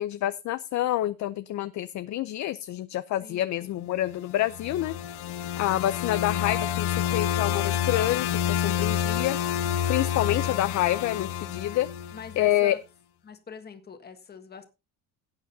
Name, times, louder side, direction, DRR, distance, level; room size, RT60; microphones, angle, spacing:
voice 1, 0.0-4.9 5.6-9.4 9.9-11.9 12.4-12.7, left 13 dB, 50° left, 12 dB, 0.6 m, -27 dB
voice 2, 3.2-3.8 12.1-12.8 13.2-14.7, left 6 dB, 25° left, 6 dB, 1.7 m, -44 dB
sound 1, 4.3-12.5, left 9 dB, 80° left, 1.1 m, -28 dB
17.5 x 8.9 x 2.7 m, 0.27 s
cardioid pair, 165°, 38 cm